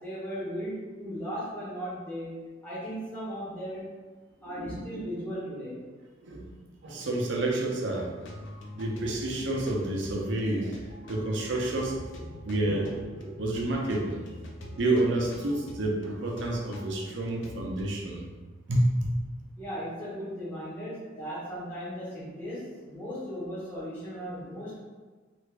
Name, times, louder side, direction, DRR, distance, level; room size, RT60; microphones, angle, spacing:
voice 1, 0.0-3.9 4.4-5.8 19.6-24.8, equal, 10° left, -12 dB, 1.2 m, -37 dB
voice 2, 4.5-5.1 6.2-6.5 6.8-8.1 8.7-12.0 12.4-14.2 14.8-18.2 18.7-19.2, right 1 dB, 65° right, -1 dB, 0.6 m, -29 dB
sound 1, 8.1-17.8, left 1 dB, 70° left, 0.5 m, -44 dB
3.3 x 2.5 x 3.2 m, 1.3 s
head